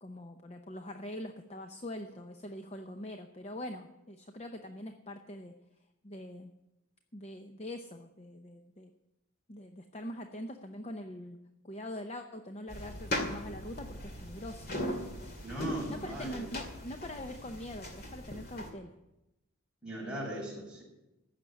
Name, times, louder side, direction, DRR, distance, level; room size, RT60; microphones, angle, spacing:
voice 1, 0.0-5.6 6.0-6.5 7.1-8.9 9.5-11.4 11.6-14.7 15.9-18.9, left 1 dB, 30° left, 6 dB, 0.7 m, -43 dB
sound 1, 12.7-18.7, left 1 dB, 50° left, 2.3 m, -39 dB
voice 2, 15.4-16.5 19.8-20.8, right 1 dB, 5° right, -5 dB, 6.0 m, -39 dB
15.0 x 6.7 x 9.4 m, 0.95 s
head